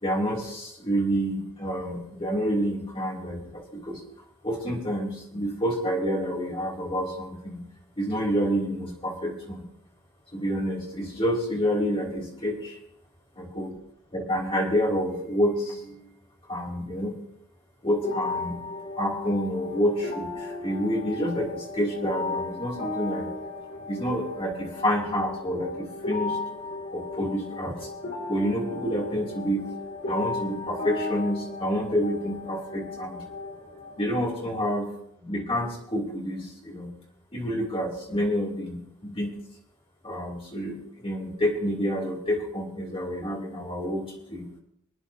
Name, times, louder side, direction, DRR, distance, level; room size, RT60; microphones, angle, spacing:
voice 1, 0.0-4.0 4.4-7.6 8.0-9.6 10.3-12.8 13.4-13.7 14.1-16.0 16.5-17.2 17.8-18.6 19.0-23.3 23.9-26.4 26.9-27.8 28.3-29.7 30.1-33.2 34.0-34.9 35.2-36.9 37.3-39.3 40.0-44.5, equal, 25° left, -3 dB, 3.0 m, -28 dB
sound 1, 18.0-34.0, left 3 dB, 50° left, 4.0 m, -35 dB
26.0 x 9.7 x 2.8 m, 0.75 s
head